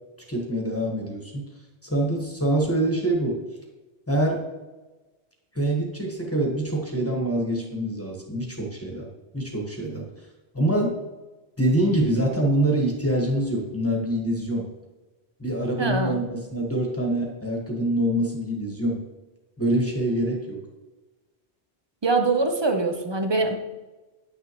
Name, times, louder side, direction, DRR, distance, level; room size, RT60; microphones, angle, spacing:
voice 1, 0.3-1.4 1.8-3.4 4.1-4.4 5.5-9.1 9.3-10.1 10.5-11.0 11.6-14.7 15.4-19.0 19.6-20.6, right 1 dB, 15° left, -1 dB, 1.3 m, -25 dB
voice 2, 15.8-16.2 22.0-23.5, right 3 dB, 35° right, 6 dB, 0.5 m, -23 dB
9.4 x 6.6 x 3.0 m, 1.2 s
omnidirectional pair, 1.1 m